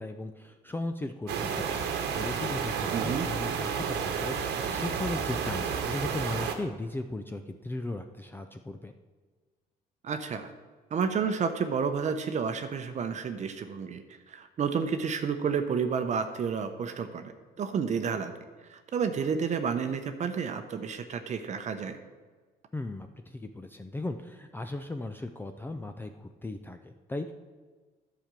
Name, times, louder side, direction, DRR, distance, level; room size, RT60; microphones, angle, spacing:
voice 1, 0.0-1.9 2.2-8.9 22.7-27.3, left 2 dB, 10° left, 7 dB, 0.5 m, -37 dB
sound 1, 1.3-6.6, right 6 dB, 80° right, 1.2 m, -31 dB
voice 2, 2.9-3.3 10.0-10.5 10.9-14.0 14.3-17.3 17.6-18.3 18.7-22.0, right 6 dB, 45° right, 8 dB, 0.8 m, -30 dB
10.0 x 5.1 x 7.5 m, 1.4 s
cardioid pair, 110°, 17 cm